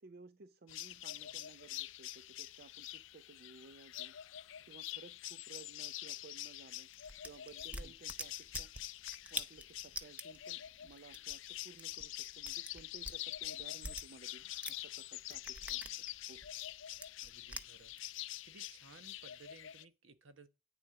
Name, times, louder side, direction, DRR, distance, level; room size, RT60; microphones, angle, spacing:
voice 1, 0.0-4.2 4.7-6.9 7.2-8.7 9.3-15.8 16.3-16.4, right 4 dB, 50° right, 0.5 m, -57 dB
sound 1, 0.7-19.8, left 14 dB, 65° left, 0.4 m, -46 dB
sound 2, 6.9-14.9 15.2-18.1, right 1 dB, 5° right, 0.6 m, -47 dB
voice 2, 17.2-17.9 18.4-20.5, right 3 dB, 70° right, 1.1 m, -59 dB
9.1 x 7.1 x 4.8 m
head